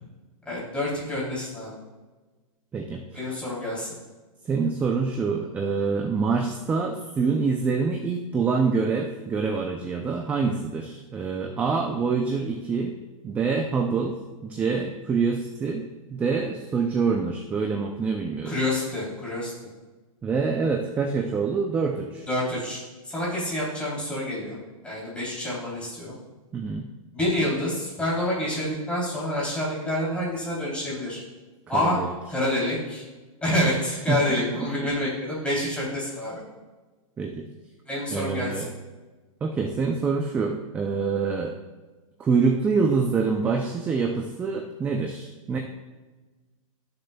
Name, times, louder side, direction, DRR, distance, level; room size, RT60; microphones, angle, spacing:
voice 1, 0.4-1.7 3.1-3.9 18.4-19.5 22.3-22.8 23.0-24.6 24.8-26.1 27.1-31.2 31.7-32.0 32.3-33.0 33.4-36.4 37.9-38.6, left 1 dB, 5° left, -7 dB, 3.1 m, -27 dB
voice 2, 2.7-3.3 4.5-12.9 13.2-15.8 16.1-18.6 20.2-22.3 26.5-26.9 31.7-32.1 34.1-34.2 37.2-37.4 38.1-38.7 39.4-41.5 42.2-45.6, right 5 dB, 10° right, 3 dB, 0.4 m, -26 dB
15.5 x 6.7 x 2.2 m, 1.2 s
hypercardioid pair, 155°, 18 cm